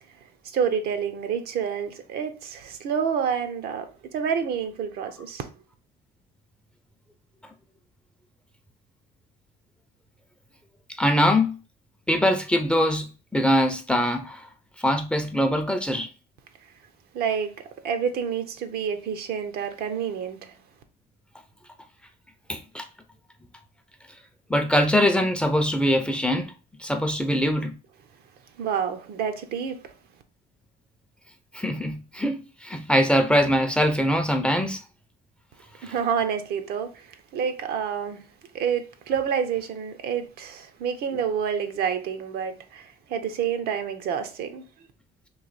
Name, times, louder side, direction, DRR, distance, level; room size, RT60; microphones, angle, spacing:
voice 1, 0.4-5.5 17.1-17.5 17.8-20.5 28.6-29.9 35.8-38.2 38.5-44.6, right 7 dB, 70° right, 0.6 m, -28 dB
voice 2, 11.0-11.6 12.1-14.5 14.8-16.1 22.5-22.8 24.5-26.5 26.8-27.8 31.5-34.8 35.8-35.9, equal, 5° left, 0.5 m, -23 dB
3.2 x 2.6 x 3.9 m
cardioid pair, 110°, 17 cm